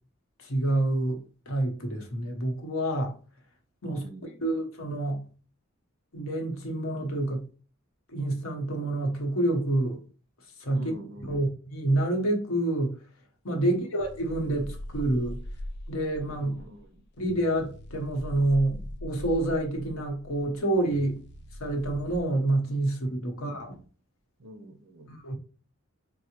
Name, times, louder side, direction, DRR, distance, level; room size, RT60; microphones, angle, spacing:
voice 1, 0.4-3.2 3.8-5.2 6.1-7.5 8.1-10.0 10.6-10.9 11.3-13.0 13.4-15.4 15.9-16.6 17.2-21.2 21.6-23.8 25.1-25.3, right 1 dB, 85° left, 0.9 m, -28 dB
voice 2, 4.0-4.4 10.7-11.4 13.6-13.7 16.4-17.0 23.4-23.6 24.4-25.1, right 1 dB, 65° right, 0.6 m, -46 dB
sound 1, 14.0-22.2, left 1 dB, 55° left, 0.4 m, -41 dB
4.5 x 2.0 x 2.9 m
head